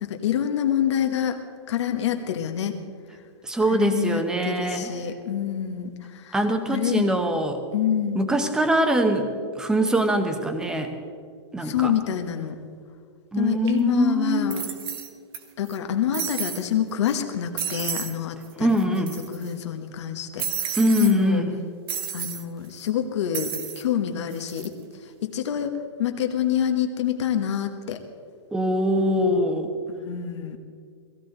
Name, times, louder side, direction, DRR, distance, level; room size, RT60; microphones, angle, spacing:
voice 1, 0.0-1.4 1.7-2.7 3.7-6.4 6.7-7.1 7.7-8.2 11.6-12.6 13.3-14.7 15.6-21.4 22.1-24.7 25.2-25.7 26.0-28.0 29.2-29.4 29.9-30.6, left 9 dB, 70° left, 5 dB, 1.2 m, -27 dB
voice 2, 3.4-5.0 6.3-7.6 8.1-9.3 9.5-10.9 11.5-11.9 13.3-14.6 18.6-19.1 20.8-21.6 28.5-29.7, right 1 dB, 5° right, 6 dB, 0.8 m, -23 dB
sound 1, 13.7-13.8 14.5-15.4 15.7-15.8 16.1-16.6 17.1-17.2 17.6-18.1 18.4-18.5 18.8-19.5 20.4-21.1 21.9-22.4 23.3-23.8 24.3-24.7, right 8 dB, 50° right, 1.3 m, -31 dB
17.5 x 15.5 x 3.9 m, 2.1 s
supercardioid pair, 165°, 15 cm